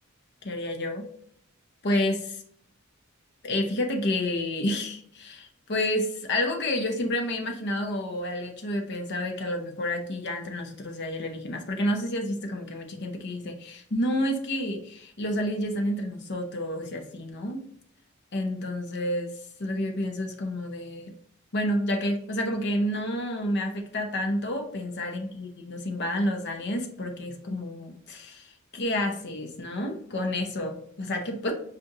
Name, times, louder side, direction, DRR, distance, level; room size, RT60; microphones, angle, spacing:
voice 1, 0.4-1.0 1.8-2.4 3.4-17.6 18.3-21.1 21.5-31.5, left 1 dB, 55° left, 4 dB, 0.8 m, -30 dB
6.1 x 2.5 x 2.7 m, 0.65 s
head